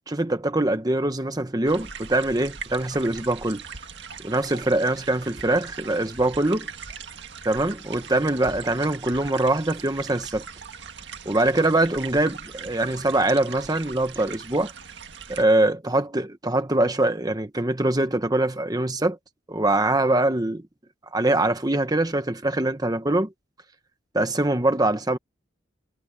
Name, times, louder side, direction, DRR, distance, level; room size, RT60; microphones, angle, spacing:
voice 1, 0.1-3.6 4.2-6.7 7.4-10.4 11.2-14.7 15.3-19.2 19.5-20.6 21.1-23.3 24.1-25.2, right 2 dB, 20° right, 1.1 m, -23 dB
sound 1, 1.7-15.4, right 6 dB, 60° right, 1.9 m, -40 dB
head